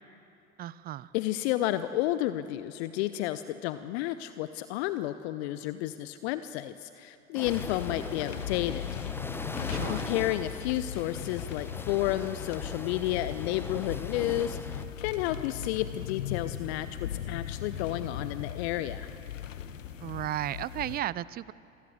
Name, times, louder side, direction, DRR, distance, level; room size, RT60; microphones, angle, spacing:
voice 1, 0.6-1.1 9.7-10.1 20.0-21.5, right 13 dB, 25° right, 20 dB, 0.5 m, -34 dB
voice 2, 1.1-8.9 9.8-19.1, left 14 dB, 55° left, 13 dB, 0.8 m, -31 dB
sound 1, 7.3-14.9, left 2 dB, 5° left, 1.0 m, -41 dB
sound 2, 7.4-21.0, left 9 dB, 75° left, 1.1 m, -38 dB
27.0 x 19.5 x 7.7 m, 2.8 s
figure-of-eight pair, 75°, 39 cm